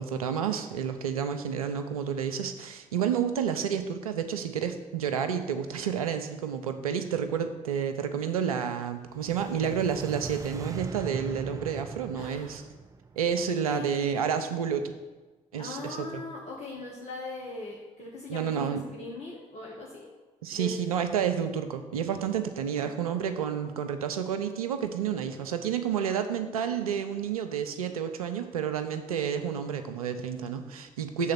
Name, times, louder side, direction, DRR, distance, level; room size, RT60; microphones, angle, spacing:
voice 1, 0.0-12.6 13.2-14.9 15.5-16.2 18.3-18.8 20.4-31.3, right 8 dB, 80° right, 8 dB, 0.4 m, -30 dB
sound 1, 9.0-14.1, right 4 dB, 20° right, 0.4 m, -40 dB
voice 2, 12.1-12.5 13.7-14.5 15.6-20.1 20.5-20.7 22.8-23.3, left 2 dB, 35° left, -2 dB, 1.1 m, -41 dB
6.4 x 3.7 x 5.8 m, 1.2 s
figure-of-eight pair, 45°, 18 cm